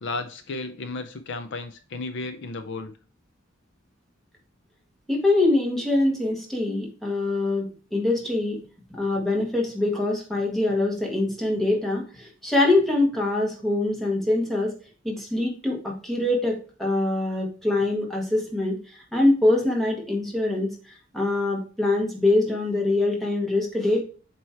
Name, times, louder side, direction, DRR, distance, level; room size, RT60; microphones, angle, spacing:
voice 1, 0.0-2.9, left 3 dB, 60° left, 8 dB, 0.6 m, -33 dB
voice 2, 5.1-8.6 8.9-14.7 15.0-20.7 21.1-24.0, left 2 dB, ahead, -1 dB, 1.7 m, -24 dB
7.7 x 3.0 x 4.4 m, 0.37 s
head